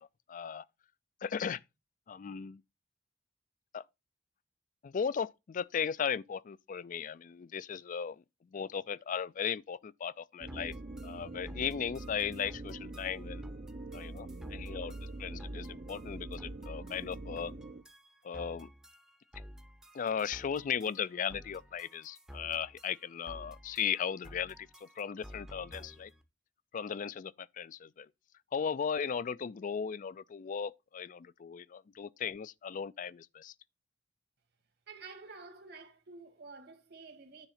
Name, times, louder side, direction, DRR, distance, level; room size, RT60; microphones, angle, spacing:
voice 1, 0.3-0.6 1.2-1.6 2.1-2.6 3.7-3.8 4.8-8.2 8.5-10.7 11.0-13.4 13.9-14.9 15.2-17.5 18.2-18.7 19.9-24.6 24.8-26.1 26.7-28.1 28.5-33.5, left 7 dB, 45° left, 0.4 m, -36 dB
sound 1, 10.4-17.8, right 2 dB, 40° right, 0.5 m, -44 dB
sound 2, 10.5-26.2, equal, 5° right, 0.7 m, -52 dB
voice 2, 34.9-37.5, right 4 dB, 65° right, 2.0 m, -50 dB
9.8 x 3.6 x 5.8 m
head